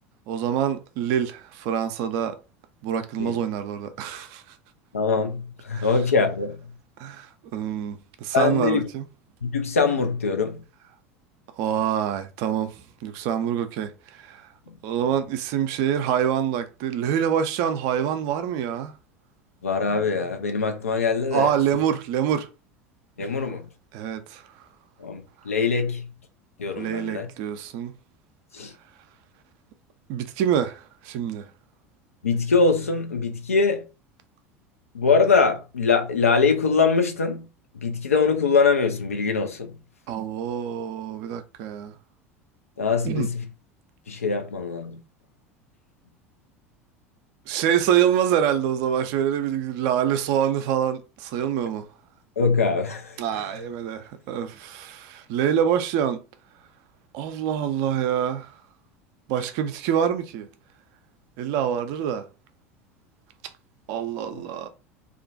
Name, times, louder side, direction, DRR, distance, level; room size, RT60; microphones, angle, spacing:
voice 1, 0.3-2.4 2.8-4.4 5.7-5.9 7.0-9.0 11.6-14.5 14.8-18.9 21.3-22.5 23.9-24.4 26.8-27.9 30.1-31.5 40.1-42.0 43.0-43.3 47.5-51.9 53.2-56.2 57.1-58.6 59.3-60.5 61.4-62.3 63.9-64.7, right 9 dB, 50° right, 0.4 m, -26 dB
voice 2, 4.9-6.6 8.3-8.9 9.4-10.6 19.6-21.5 23.2-23.7 25.0-26.1 26.6-27.3 28.5-28.7 32.2-33.8 34.9-37.5 37.8-39.7 42.8-43.5 44.1-45.0 52.4-53.2 64.3-64.4, left 4 dB, 80° left, 0.5 m, -23 dB
2.4 x 2.2 x 2.5 m
figure-of-eight pair, 75°, 8 cm